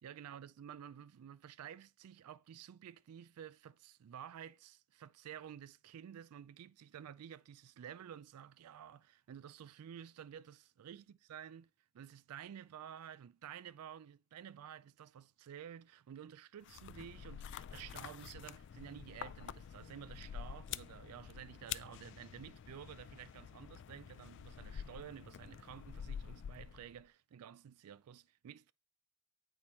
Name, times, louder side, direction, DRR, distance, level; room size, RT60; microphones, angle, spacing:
voice 1, 0.0-11.0 11.3-11.6 11.9-28.7, right 9 dB, 90° right, 0.3 m, -52 dB
sound 1, 16.6-27.0, left 8 dB, 55° left, 0.3 m, -48 dB
8.6 x 4.4 x 4.2 m
head